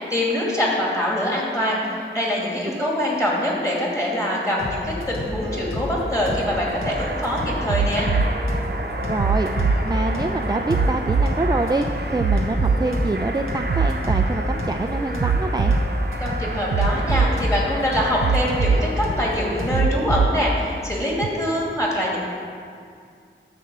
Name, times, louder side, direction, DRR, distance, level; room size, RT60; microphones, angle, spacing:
voice 1, 0.0-8.1 16.2-22.2, left 1 dB, 15° left, -4 dB, 2.5 m, -24 dB
sound 1, 4.6-19.9, left 1 dB, 85° left, 1.5 m, -31 dB
sound 2, 6.2-19.8, right 2 dB, 55° right, 0.8 m, -33 dB
sound 3, 7.7-8.3 9.2-9.8 10.7-11.3 12.2-12.8 13.7-14.3 15.2-15.8 16.7-17.3 18.2-18.8 19.7-20.3 21.2-21.3, right 5 dB, 80° right, 0.4 m, -20 dB
voice 2, 9.1-9.5 9.8-11.9 12.1-15.8, right 2 dB, 20° right, 4 dB, 0.4 m, -25 dB
10.5 x 4.2 x 7.5 m, 2.3 s
wide cardioid pair, 65°, 20 cm